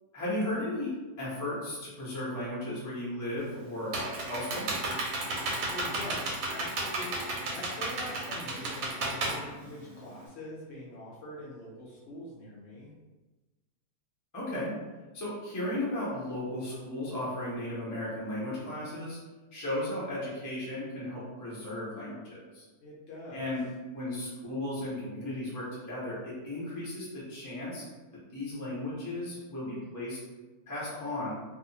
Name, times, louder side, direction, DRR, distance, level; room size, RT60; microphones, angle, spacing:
voice 1, 0.1-4.7 14.3-14.7 15.1-19.2 19.5-22.6 23.3-23.6 23.9-27.8 28.3-30.2 30.7-31.4, left 1 dB, 30° left, -8 dB, 0.3 m, -35 dB
Computer keyboard, 3.4-10.3, right 2 dB, 80° right, 1.1 m, -33 dB
voice 2, 5.4-12.9 22.8-23.5, left 1 dB, 70° left, -5 dB, 0.7 m, -44 dB
2.6 x 2.4 x 2.7 m, 1.2 s
omnidirectional pair, 1.8 m